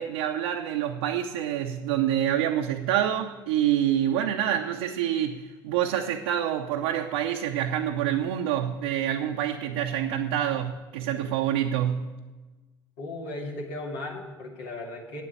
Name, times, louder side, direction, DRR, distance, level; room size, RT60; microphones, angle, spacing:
voice 1, 0.0-12.1, right 10 dB, 85° right, 2 dB, 0.7 m, -27 dB
voice 2, 13.0-15.2, left 2 dB, 80° left, -1 dB, 2.5 m, -36 dB
9.0 x 8.4 x 8.9 m, 1.2 s
supercardioid pair, 85°, 11 cm